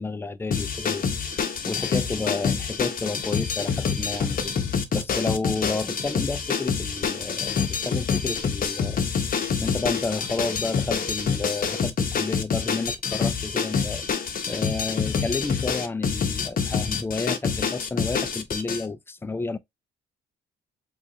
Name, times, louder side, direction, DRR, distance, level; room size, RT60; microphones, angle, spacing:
voice 1, 0.0-4.5 4.9-9.1 9.6-19.6, left 3 dB, 10° left, 0.3 m, -31 dB
sound 1, 0.5-18.8, left 6 dB, 45° left, 0.7 m, -27 dB
4.6 x 2.4 x 2.7 m
cardioid pair, 90°, 20 cm